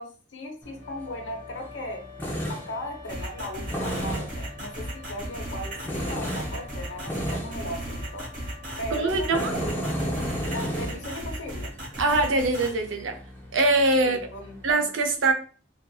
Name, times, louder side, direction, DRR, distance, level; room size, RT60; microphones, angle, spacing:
voice 1, 0.0-2.0 2.5-8.3 8.8-9.8 10.4-11.7 14.0-14.6, left 1 dB, 70° left, 0.8 m, -37 dB
Tools, 0.6-14.7, equal, 10° left, 0.6 m, -35 dB
sound 1, 0.7-11.7, left 6 dB, 35° left, 1.0 m, -48 dB
sound 2, 3.1-12.7, right 1 dB, 45° right, 1.4 m, -36 dB
voice 2, 8.9-9.6 12.0-13.2 13.5-14.2 14.6-15.3, right 2 dB, 85° right, 0.5 m, -23 dB
2.7 x 2.5 x 2.2 m
head